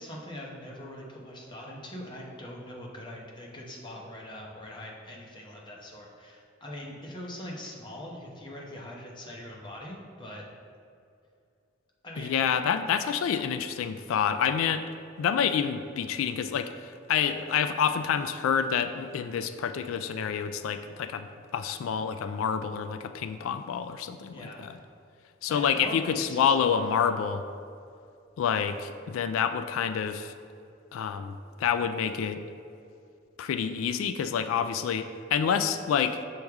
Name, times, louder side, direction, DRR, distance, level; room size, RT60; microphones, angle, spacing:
voice 1, 0.0-10.4 12.0-12.4 24.3-24.8 25.5-26.8, left 1 dB, 25° left, -2 dB, 0.9 m, -42 dB
voice 2, 12.2-14.8 15.2-24.8 25.4-27.4 28.4-30.3 30.9-32.4 33.4-36.2, left 7 dB, 85° left, 10 dB, 0.3 m, -28 dB
6.4 x 4.6 x 3.5 m, 2.4 s
head